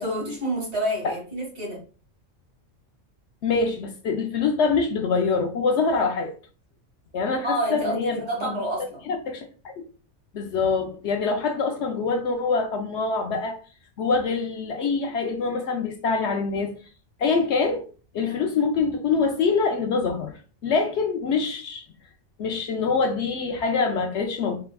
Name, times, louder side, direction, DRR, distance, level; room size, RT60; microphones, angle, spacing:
voice 1, 0.0-1.8 7.4-9.0 18.2-18.5, right 1 dB, 55° right, 2.2 m, -28 dB
voice 2, 3.4-6.3 7.1-8.6 9.1-9.9 10.3-13.6 14.0-16.7 17.2-17.9 18.1-20.3 20.6-21.8 22.4-24.6, left 4 dB, 65° left, 0.8 m, -25 dB
4.2 x 3.3 x 2.2 m
omnidirectional pair, 1.3 m